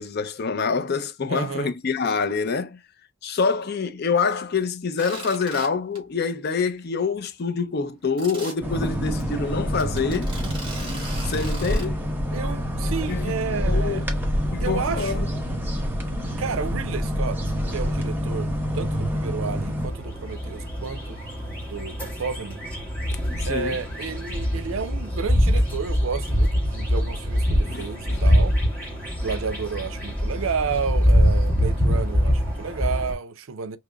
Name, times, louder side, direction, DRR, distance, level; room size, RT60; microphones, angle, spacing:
voice 1, 0.0-2.8 3.2-10.3 10.8-10.9 11.2-12.0 13.1-14.0 14.5-15.3 23.4-23.8 27.6-28.2, left 5 dB, 50° left, 0.5 m, -26 dB
voice 2, 1.3-1.7 12.3-14.0 14.6-15.3 16.4-17.4 17.7-18.5 18.7-21.2 21.6-22.6 23.4-28.6 29.2-33.8, right 5 dB, 75° right, 0.5 m, -31 dB
sound 1, 5.0-5.7 5.9-6.2 6.6-6.7 7.0-7.1 8.2-8.5 9.2-9.3 9.8-11.9, right 2 dB, 25° right, 1.9 m, -38 dB
sound 2, 8.6-19.9, equal, 10° right, 0.8 m, -27 dB
sound 3, 19.8-33.1, equal, 10° left, 1.8 m, -24 dB
4.9 x 2.9 x 2.2 m
head